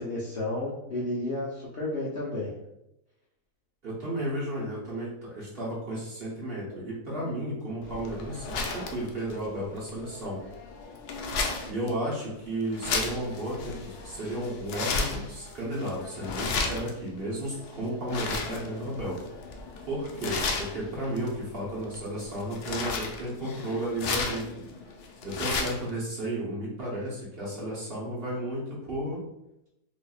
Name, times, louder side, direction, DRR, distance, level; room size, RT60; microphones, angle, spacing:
voice 1, 0.0-2.5, left 2 dB, 60° left, -6 dB, 0.6 m, -32 dB
voice 2, 3.8-10.4 11.7-19.2 19.9-24.4 25.2-29.2, right 1 dB, 45° right, -6 dB, 0.9 m, -33 dB
sound 1, 7.8-25.9, left 4 dB, 80° left, 1.1 m, -35 dB
4.1 x 2.6 x 2.3 m, 0.86 s
omnidirectional pair, 1.7 m